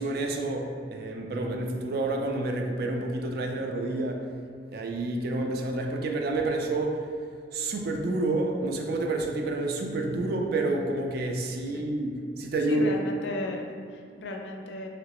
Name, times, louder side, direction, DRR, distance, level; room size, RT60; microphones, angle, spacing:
voice 1, 0.0-4.3 4.7-7.1 7.5-12.9, right 2 dB, 60° right, 3 dB, 0.4 m, -29 dB
voice 2, 12.7-14.9, left 2 dB, 70° left, 2 dB, 0.4 m, -35 dB
3.1 x 2.9 x 2.9 m, 2.3 s
head